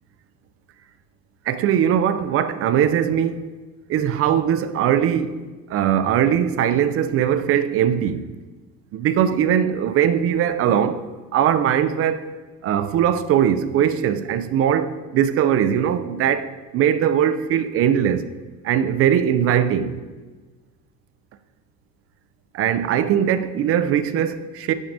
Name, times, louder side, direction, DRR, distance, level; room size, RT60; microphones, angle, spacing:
voice 1, 1.5-3.4 3.9-5.4 5.7-8.2 8.9-11.1 11.3-12.3 12.6-18.3 18.6-20.0 22.5-24.7, right 9 dB, 45° right, 0.4 m, -20 dB
6.2 x 5.9 x 2.6 m
supercardioid pair, 105°, 33 cm